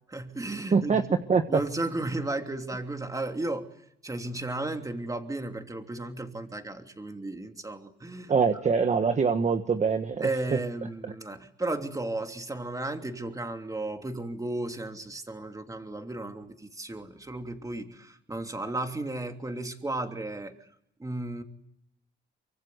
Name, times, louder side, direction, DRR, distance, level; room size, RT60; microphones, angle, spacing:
voice 1, 0.1-1.2 1.5-3.7 4.0-8.3 10.2-20.7 21.0-21.4, right 2 dB, 15° right, 5 dB, 3.0 m, -34 dB
voice 2, 0.7-1.0 1.3-1.6 8.3-10.3, right 5 dB, 35° right, 7 dB, 1.4 m, -24 dB
24.5 x 24.0 x 8.0 m, 0.79 s
cardioid pair, 90°, 20 cm